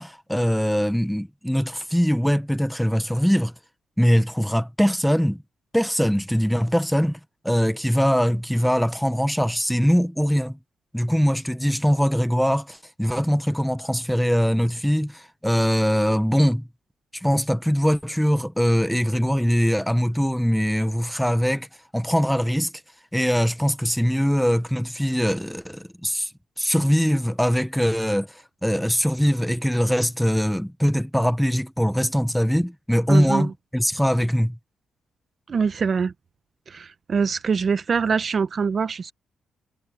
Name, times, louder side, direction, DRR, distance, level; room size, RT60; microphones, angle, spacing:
voice 1, 0.0-3.5 4.0-5.4 5.7-7.2 7.4-10.6 10.9-16.7 17.1-21.7 21.9-22.7 23.1-26.3 26.6-34.6, equal, ahead, 1.0 m, -22 dB
voice 2, 33.1-33.5 35.5-36.1 36.7-39.1, right 5 dB, 45° right, 1.1 m, -24 dB
cardioid pair, 90°, 0 cm